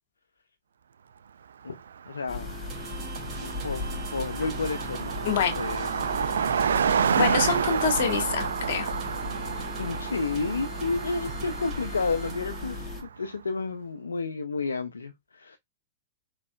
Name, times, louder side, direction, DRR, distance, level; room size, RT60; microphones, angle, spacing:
Car passing by, 1.8-1.9 2.1-13.1, right 7 dB, 75° right, 0.3 m, -30 dB
voice 1, 2.1-2.5 3.4-6.1 9.8-15.6, left 4 dB, 85° left, 0.4 m, -31 dB
sound 1, 2.3-13.0, left 3 dB, 25° left, 1.2 m, -37 dB
sound 2, 2.7-12.3, right 5 dB, 30° right, 1.9 m, -44 dB
voice 2, 5.2-5.6 7.1-8.9, left 7 dB, 60° left, 1.3 m, -26 dB
4.6 x 4.1 x 2.2 m
hypercardioid pair, 110°, 0 cm